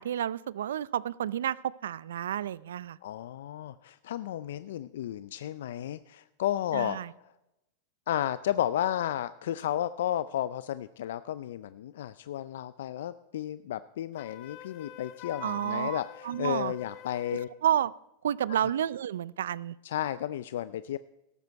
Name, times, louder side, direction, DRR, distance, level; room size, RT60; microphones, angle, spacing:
voice 1, 0.0-1.6 1.8-3.0 6.7-7.1 15.4-16.7 17.6-17.9 18.2-19.7, right 10 dB, 85° right, 21 dB, 0.4 m, -30 dB
voice 2, 3.0-7.0 8.1-17.5 19.8-21.0, left 11 dB, 75° left, 15 dB, 0.4 m, -33 dB
Wind instrument woodwind instrument, 14.1-17.6, left 10 dB, 50° left, 1.3 m, -45 dB
13.5 x 12.0 x 4.6 m, 0.90 s
hypercardioid pair, 120°, 0 cm